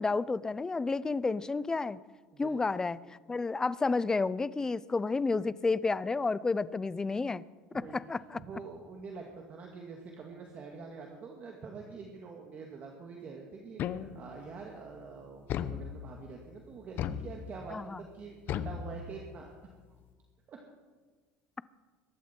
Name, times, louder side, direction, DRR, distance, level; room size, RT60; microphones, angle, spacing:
voice 1, 0.0-2.0 2.4-3.0 3.3-7.4 7.7-8.4 17.7-18.0, left 3 dB, 15° left, 18 dB, 0.5 m, -31 dB
voice 2, 7.7-20.0 20.5-20.6, right 4 dB, 40° right, 1 dB, 2.0 m, -46 dB
sound 1, 13.8-14.5 15.5-16.3 17.0-17.8 18.5-19.5, left 9 dB, 50° left, 0.8 m, -37 dB
22.5 x 12.0 x 4.5 m, 1.4 s
supercardioid pair, 120°, 4 cm